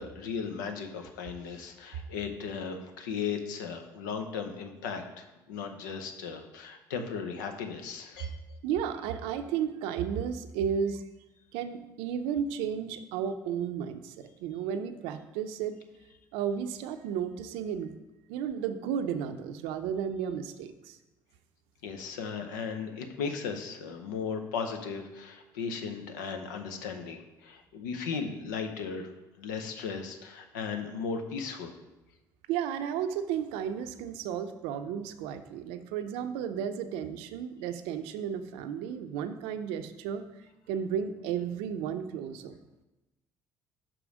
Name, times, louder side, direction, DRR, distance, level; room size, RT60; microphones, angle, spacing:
voice 1, 0.0-8.4 21.8-29.1 29.4-31.7, left 5 dB, 85° left, 5 dB, 0.7 m, -36 dB
voice 2, 8.6-11.0 11.5-15.8 16.3-17.9 18.3-21.0 32.5-40.3 40.7-42.6, right 8 dB, 75° right, 9 dB, 0.5 m, -33 dB
5.9 x 4.9 x 5.0 m, 1.0 s
hypercardioid pair, 55°, 10 cm